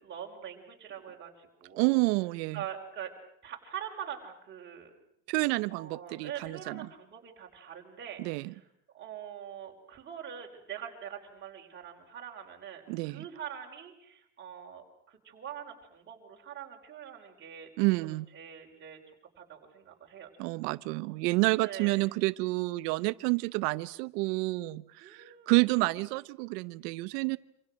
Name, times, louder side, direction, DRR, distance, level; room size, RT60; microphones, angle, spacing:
voice 1, 0.0-2.0 2.5-3.1 3.4-4.9 5.7-8.6 8.9-17.7 18.3-19.0 19.4-20.3 21.6-22.0 25.0-25.6 25.8-25.9, right 9 dB, 20° right, 0 dB, 4.9 m, -44 dB
voice 2, 1.8-2.6 5.3-6.9 8.2-8.5 12.9-13.2 17.8-18.3 20.4-27.4, right 24 dB, 75° right, 15 dB, 1.0 m, -29 dB
27.5 x 27.0 x 6.5 m, 0.75 s
cardioid pair, 180°, 48 cm